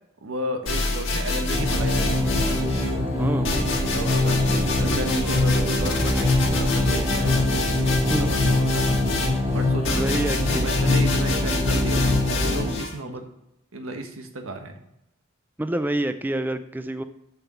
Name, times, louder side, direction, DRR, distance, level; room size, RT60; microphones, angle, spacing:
voice 1, 0.2-2.5 3.8-13.2 13.7-14.7, right 1 dB, 85° right, 5 dB, 1.3 m, -33 dB
sound 1, 0.7-3.0 3.4-12.9, left 2 dB, 60° left, 1.7 m, -27 dB
sound 2, 1.5-12.7, left 2 dB, 25° right, 2.8 m, -24 dB
voice 2, 3.2-3.5 8.1-8.3 9.9-10.7 11.5-11.7 13.1-13.2 15.6-17.0, right 1 dB, 10° right, 10 dB, 0.3 m, -27 dB
6.8 x 6.3 x 6.9 m, 0.85 s
head